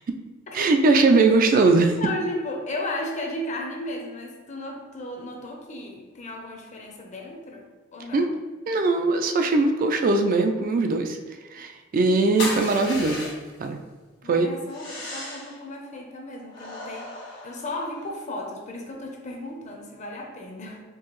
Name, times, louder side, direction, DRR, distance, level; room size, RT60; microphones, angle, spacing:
voice 1, 0.5-1.9 8.1-8.3 8.7-11.2 11.5-13.3 13.6-13.8 14.3-14.5, right 3 dB, 45° right, 5 dB, 0.3 m, -20 dB
voice 2, 2.0-7.7 7.9-8.3 12.5-12.8 14.2-20.8, left 1 dB, 35° left, 1 dB, 0.6 m, -35 dB
sound 1, 12.4-13.6 14.7-15.6 16.5-18.2, left 2 dB, 65° left, 1.4 m, -35 dB
4.6 x 2.6 x 3.0 m, 1.3 s
head